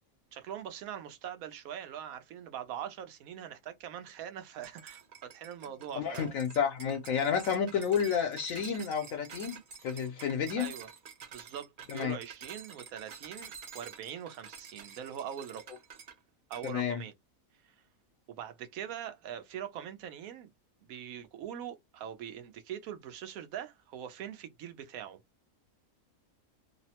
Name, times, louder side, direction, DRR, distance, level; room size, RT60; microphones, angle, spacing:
voice 1, 0.3-6.3 10.6-10.9 11.3-15.6 16.5-17.1 17.6-17.7 18.3-20.5 20.8-25.2, right 9 dB, 90° right, 1.1 m, -42 dB
sound 1, 4.6-16.2 16.5-16.8, right 7 dB, 50° right, 0.6 m, -49 dB
voice 2, 5.9-9.6 9.8-10.7 11.9-12.2 16.6-17.0, left 7 dB, 75° left, 1.0 m, -30 dB
3.0 x 2.0 x 2.8 m
omnidirectional pair, 1.4 m